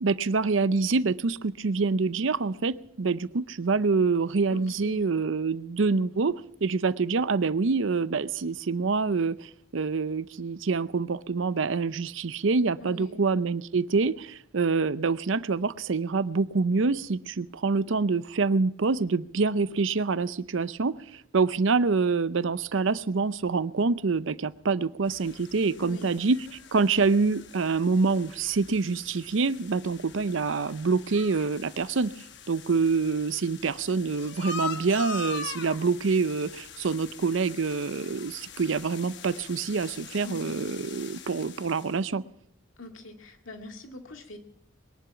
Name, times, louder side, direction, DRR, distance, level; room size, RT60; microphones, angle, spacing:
voice 1, 0.0-26.4 26.7-42.2, right 4 dB, 65° right, 0.6 m, -26 dB
voice 2, 4.5-5.0 12.8-13.2 25.8-26.1 40.2-40.6 42.8-44.4, left 2 dB, 75° left, 2.0 m, -43 dB
sound 1, 25.1-42.0, left 4 dB, 60° left, 1.1 m, -43 dB
22.0 x 11.0 x 5.8 m
head